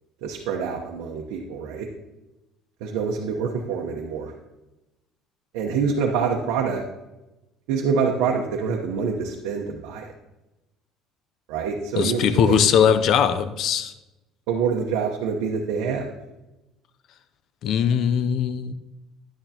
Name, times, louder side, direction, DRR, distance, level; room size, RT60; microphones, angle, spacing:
voice 1, 0.2-1.9 2.8-4.3 5.5-6.8 7.7-10.1 11.5-12.9 14.5-16.1, right 5 dB, 90° right, 1.0 m, -26 dB
voice 2, 12.0-13.9 17.6-18.7, left 8 dB, 45° left, 0.5 m, -20 dB
11.0 x 9.2 x 2.9 m
cardioid pair, 160°, 0 cm